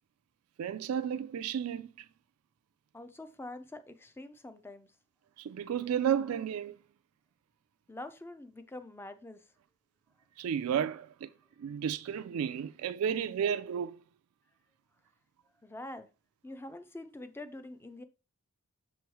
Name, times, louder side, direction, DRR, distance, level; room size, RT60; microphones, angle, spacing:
voice 1, 0.6-2.1 5.4-6.8 10.4-11.3 11.6-14.0, right 8 dB, 75° right, 0.3 m, -32 dB
voice 2, 2.9-5.0 7.9-9.5 15.6-16.1 16.4-18.0, left 2 dB, 10° left, 0.4 m, -45 dB
6.9 x 3.1 x 4.6 m
head